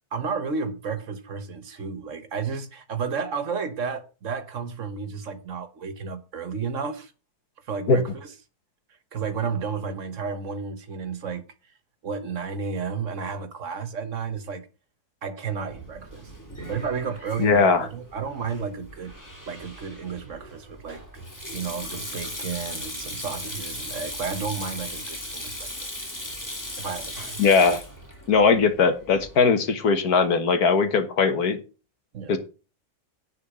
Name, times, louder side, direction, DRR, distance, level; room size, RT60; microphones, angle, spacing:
voice 1, 0.1-7.1 7.6-8.3 9.1-11.4 12.0-14.7 15.2-16.3 16.7-19.1 19.5-21.0 21.5-25.7 26.8-27.4 32.1-32.4, right 5 dB, 60° right, 1.4 m, -32 dB
Sink (filling or washing), 15.7-29.4, left 1 dB, 10° left, 2.4 m, -38 dB
voice 2, 17.4-17.9 27.4-27.8 28.3-31.6 32.3-32.4, left 5 dB, 90° left, 1.8 m, -20 dB
10.0 x 4.5 x 7.4 m
omnidirectional pair, 1.6 m